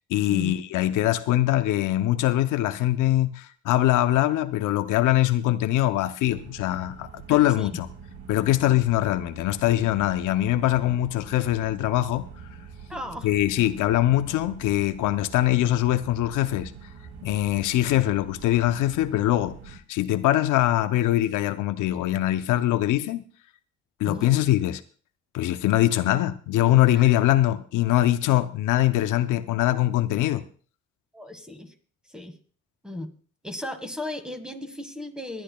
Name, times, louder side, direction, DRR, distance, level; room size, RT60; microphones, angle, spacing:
voice 1, 0.1-7.9 8.3-12.3 13.2-16.7 17.2-23.2 24.0-24.8 25.3-30.4, left 14 dB, 90° left, 0.7 m, -23 dB
sound 1, 6.2-19.8, right 6 dB, 70° right, 1.5 m, -44 dB
voice 2, 7.3-7.8 12.9-13.3 24.0-24.4 31.1-31.7 32.1-32.3 32.8-33.1 33.4-35.4, left 1 dB, 5° right, 1.6 m, -36 dB
25.0 x 10.5 x 2.3 m
cardioid pair, 90°, 30 cm